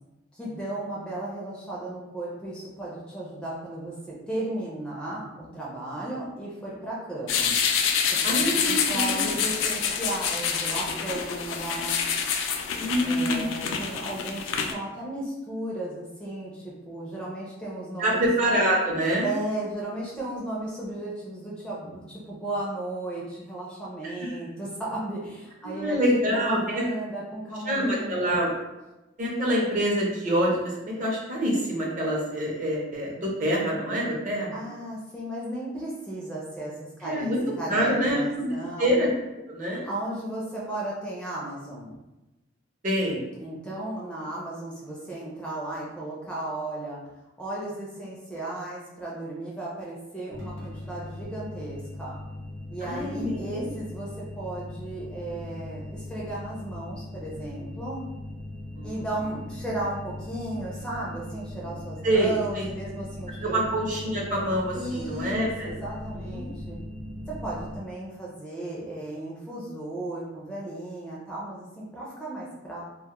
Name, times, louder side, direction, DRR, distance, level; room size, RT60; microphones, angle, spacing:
voice 1, 0.3-7.5 8.1-8.4 8.6-12.1 13.0-18.2 19.2-26.0 26.3-28.5 34.5-38.9 39.8-42.0 43.4-47.0 47.4-52.2 52.7-58.1 58.8-63.7 64.7-66.8 67.3-72.8, right 1 dB, 5° left, -6 dB, 0.4 m, -35 dB
sound 1, 7.3-14.7, left 7 dB, 80° left, 0.3 m, -27 dB
voice 2, 8.2-9.3 12.8-13.6 18.0-19.3 24.0-24.3 25.8-26.8 27.7-28.5 29.2-34.6 37.0-37.4 37.7-38.5 38.8-39.1 39.5-39.9 42.8-43.2 52.8-53.7 58.8-59.0 62.0-62.7 63.4-65.7 66.1-66.4, equal, 40° right, -3 dB, 0.6 m, -26 dB
sound 2, 50.3-67.8, left 1 dB, 85° right, 0.9 m, -39 dB
2.2 x 2.1 x 2.8 m, 1.0 s
head